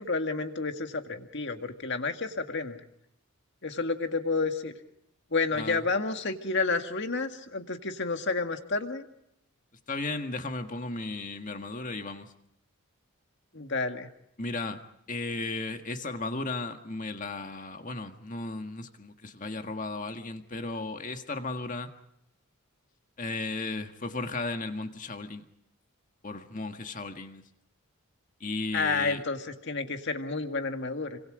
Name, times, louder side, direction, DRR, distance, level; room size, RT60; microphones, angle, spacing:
voice 1, 0.0-2.8 3.6-4.7 5.3-9.1 13.5-14.1 28.7-31.2, left 3 dB, 50° left, 6 dB, 2.0 m, -30 dB
voice 2, 9.9-12.3 14.4-21.9 23.2-25.4 26.2-27.4 28.4-29.2, left 3 dB, 35° left, 6 dB, 1.8 m, -35 dB
27.5 x 25.5 x 5.0 m, 0.79 s
head